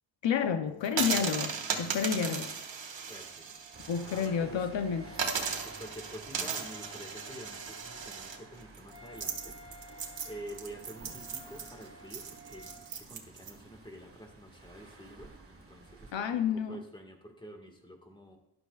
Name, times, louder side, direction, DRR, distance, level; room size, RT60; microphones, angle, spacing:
voice 1, 0.2-2.5 3.9-5.1 16.1-16.8, left 7 dB, 80° left, 0.8 m, -30 dB
sound 1, 0.8-4.3 4.6-4.7 5.1-13.5, right 6 dB, 85° right, 1.5 m, -37 dB
Wind instrument woodwind instrument, 2.8-12.9, right 2 dB, 15° right, 2.2 m, -54 dB
voice 2, 3.1-3.5 3.7-4.8 5.6-9.6 10.2-18.4, equal, 10° left, 1.8 m, -48 dB
sound 2, 3.7-16.1, right 3 dB, 30° right, 1.7 m, -53 dB
12.5 x 11.0 x 2.4 m
wide cardioid pair, 105°, 44 cm